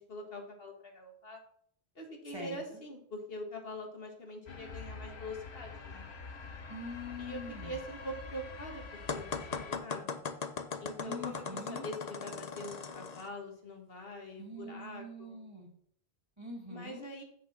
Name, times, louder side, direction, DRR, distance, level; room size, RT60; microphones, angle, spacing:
voice 1, 0.0-1.4 2.0-6.1 7.2-10.2 10.8-15.4 16.7-17.2, left 1 dB, 65° left, 2 dB, 1.9 m, -44 dB
voice 2, 2.3-2.6 6.7-7.8 11.0-11.8 14.4-15.7 16.4-17.0, left 1 dB, 25° right, -1 dB, 2.0 m, -44 dB
sound 1, 4.5-9.8, left 4 dB, 85° left, 1.4 m, -46 dB
sound 2, 9.1-13.3, left 5 dB, 45° left, 0.8 m, -39 dB
7.9 x 6.5 x 5.9 m, 0.66 s
omnidirectional pair, 1.0 m